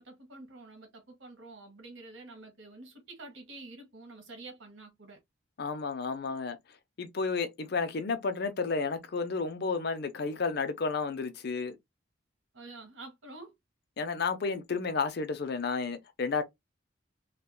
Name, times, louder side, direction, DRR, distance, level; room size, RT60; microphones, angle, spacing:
voice 1, 0.0-5.2 12.5-13.5, right 2 dB, 70° right, 1.5 m, -48 dB
voice 2, 5.6-6.6 7.0-11.8 14.0-16.4, left 4 dB, 55° left, 0.5 m, -32 dB
3.6 x 2.2 x 2.2 m
head